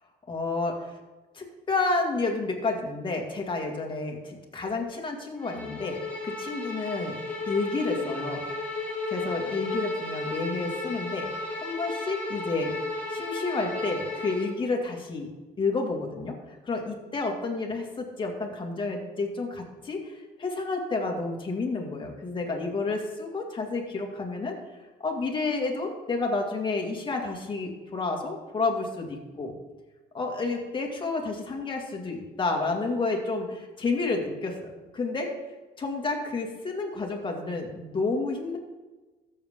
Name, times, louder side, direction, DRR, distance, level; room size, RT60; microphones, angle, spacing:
voice 1, 0.3-0.9 1.3-6.0 6.2-7.2 7.5-8.5 9.1-12.7 13.1-15.3 15.6-16.4 16.6-24.6 25.0-29.5 30.1-35.3 35.8-38.6, left 3 dB, 30° left, 1 dB, 2.1 m, -30 dB
Bowed string instrument, 5.4-14.5, left 2 dB, 10° left, 3.1 m, -34 dB
13.5 x 7.4 x 3.7 m, 1.2 s
cardioid pair, 110°, 17 cm